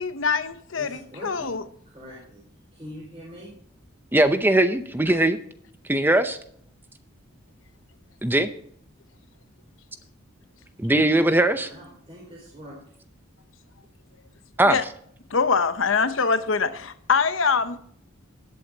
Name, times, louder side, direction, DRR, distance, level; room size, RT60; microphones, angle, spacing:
voice 1, 0.0-1.6 14.7-14.8 15.3-17.8, left 5 dB, 65° left, 0.8 m, -24 dB
voice 2, 0.7-1.6 1.9-2.4 2.7-3.5 11.7-12.8, equal, 25° right, 5.0 m, -43 dB
voice 3, 4.1-5.4 5.9-6.4 8.2-8.5 10.8-11.7 14.6-14.8, right 1 dB, 10° right, 0.6 m, -20 dB
19.0 x 8.4 x 2.8 m
head